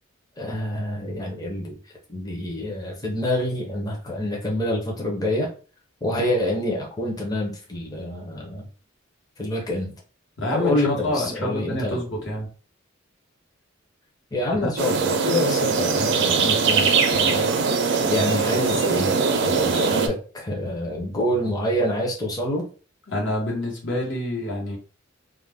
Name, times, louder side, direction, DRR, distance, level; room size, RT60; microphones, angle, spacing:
voice 1, 0.4-1.8 2.1-5.5 6.0-8.7 9.4-9.9 10.5-12.0 14.3-17.5 18.0-22.6, left 1 dB, 20° left, -2 dB, 0.6 m, -27 dB
voice 2, 10.4-12.5 14.5-14.7 23.1-24.8, left 1 dB, 65° left, -2 dB, 1.1 m, -27 dB
sound 1, 14.8-20.1, right 5 dB, 60° right, 0.4 m, -21 dB
2.4 x 2.1 x 3.4 m, 0.38 s
head